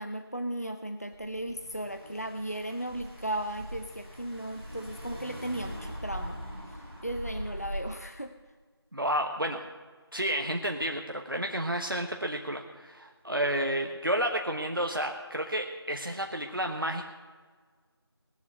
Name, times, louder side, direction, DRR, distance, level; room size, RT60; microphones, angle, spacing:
voice 1, 0.0-6.4 6.7-8.3, right 1 dB, 35° left, 7 dB, 0.6 m, -36 dB
Car / Engine, 1.1-8.0, equal, 5° right, 3.2 m, -41 dB
voice 2, 8.9-9.6 10.1-17.1, right 1 dB, 55° right, 3 dB, 1.1 m, -31 dB
19.0 x 7.3 x 8.0 m, 1.5 s
figure-of-eight pair, 180°, 14 cm